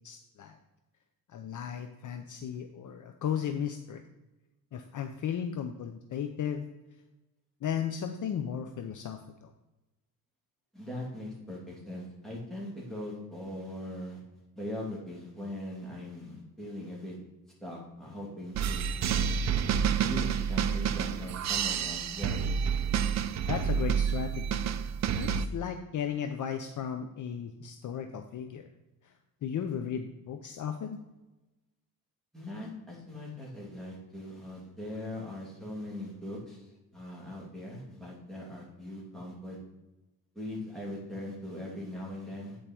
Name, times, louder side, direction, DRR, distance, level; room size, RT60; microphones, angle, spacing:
voice 1, 0.0-0.6 1.3-4.0 4.7-6.6 7.6-9.5 23.5-24.6 25.2-28.7 29.4-31.0, left 8 dB, 50° left, 6 dB, 0.6 m, -35 dB
voice 2, 10.7-14.2 14.6-17.2 17.6-19.0 19.9-22.5 32.3-39.6 40.3-42.6, left 1 dB, ahead, -5 dB, 2.7 m, -40 dB
sound 1, 18.5-25.5, right 7 dB, 45° right, 0.4 m, -29 dB
9.0 x 4.9 x 4.4 m, 1.0 s
cardioid pair, 140°, 39 cm